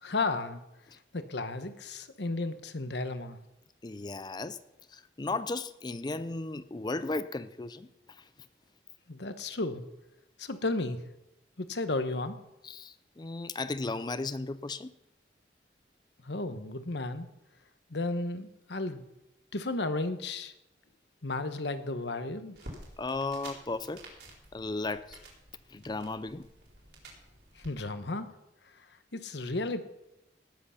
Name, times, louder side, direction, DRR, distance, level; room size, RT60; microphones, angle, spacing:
voice 1, 0.0-0.6 1.1-3.4 9.1-9.8 10.4-11.0 11.6-12.4 16.2-17.3 17.9-19.0 19.5-20.5 21.2-22.6 27.6-28.3 29.1-29.8, left 2 dB, 75° left, 1.1 m, -33 dB
voice 2, 3.8-4.6 4.9-8.2 12.6-14.9 23.0-24.0 24.5-25.2 25.7-26.5, left 3 dB, 25° left, 0.4 m, -35 dB
sound 1, 22.5-27.7, right 1 dB, 65° right, 4.1 m, -50 dB
18.5 x 8.0 x 5.7 m
head